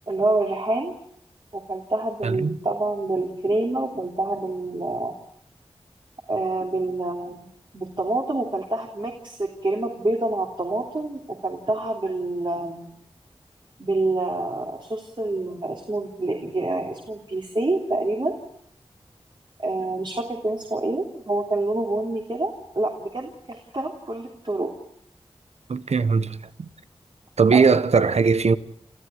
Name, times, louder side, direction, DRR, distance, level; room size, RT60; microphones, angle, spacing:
voice 1, 0.1-1.0 1.5-5.1 6.3-7.5 7.7-12.9 13.8-18.3 19.6-24.7 27.5-27.7, right 2 dB, 45° right, 3.3 m, -27 dB
voice 2, 2.2-2.6 25.7-26.7 27.4-28.6, right 5 dB, 85° right, 0.9 m, -20 dB
29.5 x 14.5 x 9.2 m
cardioid pair, 45°, 11 cm